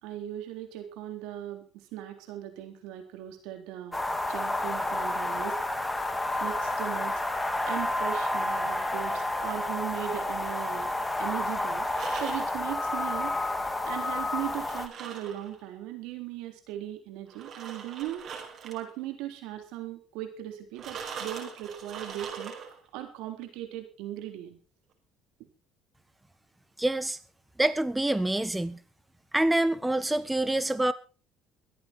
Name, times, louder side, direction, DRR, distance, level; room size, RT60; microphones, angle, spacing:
voice 1, 0.0-4.0 4.3-5.6 6.4-7.2 7.7-10.9 11.2-11.9 12.2-13.4 13.9-18.2 18.6-22.5 22.9-24.6, right 12 dB, 80° right, 6 dB, 3.6 m, -38 dB
sound 1, 3.9-14.9, left 2 dB, 10° left, 2.2 m, -30 dB
sound 2, 8.9-10.3 11.8-12.6 14.4-15.7 17.3-18.9 20.8-22.9, right 6 dB, 55° right, 5.2 m, -42 dB
voice 2, 26.8-27.2 27.6-28.8 29.3-30.9, right 1 dB, 10° right, 14 dB, 1.5 m, -26 dB
24.0 x 9.0 x 4.4 m, 0.35 s
supercardioid pair, 80°, 0 cm